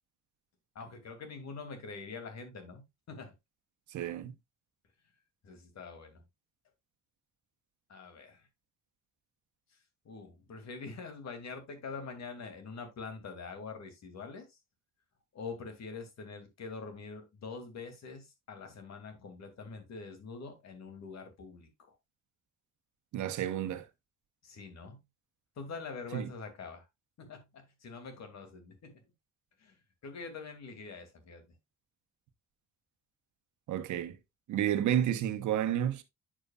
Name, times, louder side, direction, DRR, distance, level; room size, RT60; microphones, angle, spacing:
voice 1, 0.7-2.8 3.1-3.3 5.4-6.2 7.9-8.5 10.0-14.6 15.3-21.7 24.4-25.0 25.6-26.8 27.2-29.0 29.6-31.4, left 4 dB, 60° left, 2.6 m, -45 dB
voice 2, 3.9-4.3 23.1-23.9 26.1-26.3 33.7-34.2 34.5-36.0, right 11 dB, 75° right, 1.1 m, -31 dB
8.7 x 6.7 x 2.4 m
cardioid pair, 90°, 30 cm